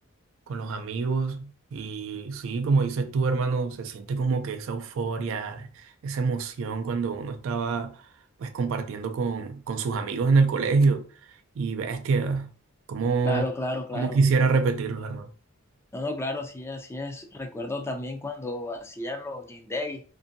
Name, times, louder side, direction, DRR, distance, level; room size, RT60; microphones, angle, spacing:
voice 1, 0.5-8.0 8.4-11.1 11.6-12.5 12.9-13.4 13.9-15.3, right 4 dB, 65° right, 0.3 m, -26 dB
voice 2, 13.2-14.2 15.9-20.0, left 2 dB, 10° left, 0.3 m, -32 dB
2.6 x 2.5 x 2.5 m
head